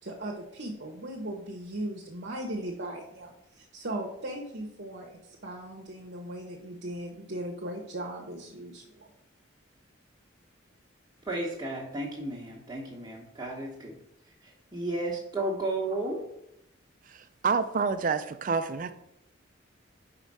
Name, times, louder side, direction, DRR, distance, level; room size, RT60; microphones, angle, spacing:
voice 1, 0.0-8.9, right 1 dB, 55° right, -2 dB, 1.0 m, -38 dB
voice 2, 11.2-14.0 14.4-16.2, right 2 dB, 20° right, -6 dB, 1.2 m, -33 dB
voice 3, 17.1-18.9, right 5 dB, 40° right, 11 dB, 0.4 m, -28 dB
5.3 x 4.9 x 6.1 m, 0.80 s
head